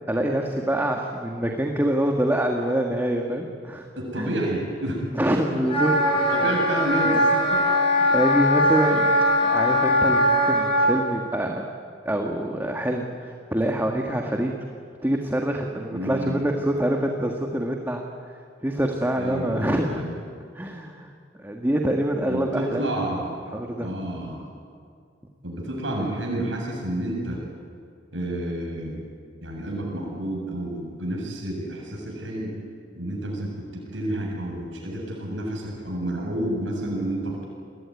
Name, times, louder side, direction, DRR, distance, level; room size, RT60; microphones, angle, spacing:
voice 1, 0.1-3.9 4.2-4.3 5.1-6.0 8.1-9.1 9.4-11.7 12.0-14.5 15.0-18.1 18.6-20.2 20.5-21.1 21.4-22.9 23.5-23.9, right 1 dB, 10° right, 2 dB, 1.7 m, -25 dB
voice 2, 4.0-5.0 5.3-5.4 6.0-6.1 6.3-7.6 8.9-9.1 15.9-16.4 19.2-20.1 22.2-23.4 23.8-24.4 25.4-27.4 28.1-29.0 29.4-32.6 32.9-37.4, right 1 dB, 80° right, -1 dB, 7.1 m, -30 dB
Wind instrument woodwind instrument, 5.7-10.9, equal, 30° left, 7.4 m, -21 dB
30.0 x 20.5 x 9.8 m, 2.2 s
head